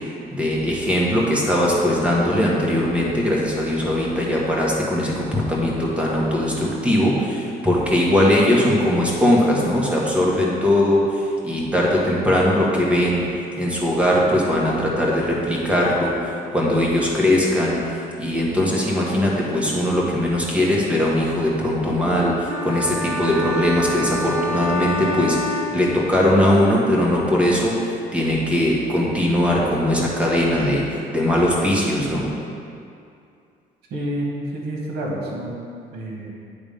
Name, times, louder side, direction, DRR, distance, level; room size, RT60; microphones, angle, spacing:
voice 1, 0.3-13.2 13.6-17.8 18.2-30.8 31.1-32.3, left 1 dB, 5° right, -4 dB, 1.5 m, -20 dB
sound 1, 22.5-26.3, left 1 dB, 35° right, 1.6 m, -28 dB
voice 2, 33.9-35.6 35.9-36.3, right 1 dB, 80° right, -2 dB, 1.6 m, -28 dB
9.0 x 3.6 x 5.3 m, 2.5 s
cardioid pair, 110°, 17 cm